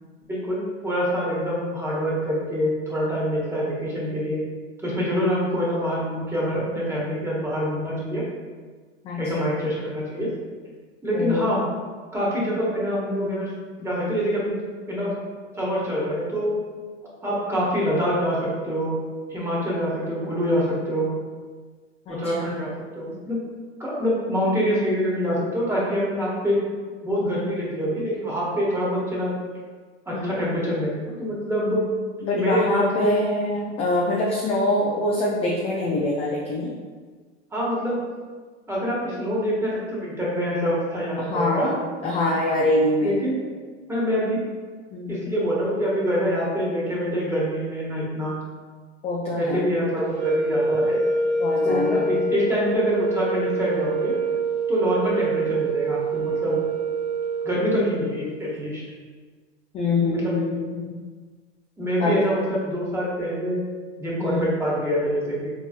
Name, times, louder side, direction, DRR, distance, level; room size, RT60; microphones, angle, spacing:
voice 1, 0.3-4.4 4.8-8.2 9.2-10.3 11.0-11.6 12.1-13.5 13.8-14.6 14.9-15.1 15.6-16.5 17.2-19.0 19.3-21.1 22.1-22.7 22.9-23.4 23.8-26.6 27.0-29.4 30.1-31.8 32.3-33.1 37.5-38.0 38.7-41.7 43.0-43.4 43.9-44.4 45.1-48.4 49.3-51.0 51.6-54.2 54.7-56.6 57.4-58.8 60.1-60.3 61.8-63.6 64.0-65.5, equal, 10° right, -6 dB, 1.1 m, -25 dB
voice 2, 9.0-9.5 11.1-11.5 22.1-22.6 27.2-27.5 30.1-30.5 32.2-36.7 39.1-39.3 41.2-41.8 42.0-43.2 44.9-45.2 49.0-49.7 51.4-52.0 59.7-60.9 62.0-62.3 64.2-64.5, left 2 dB, 20° left, -3 dB, 0.3 m, -25 dB
sound 1, 50.1-58.3, right 3 dB, 85° right, 0.6 m, -25 dB
4.0 x 2.9 x 2.4 m, 1.5 s
hypercardioid pair, 105°, 34 cm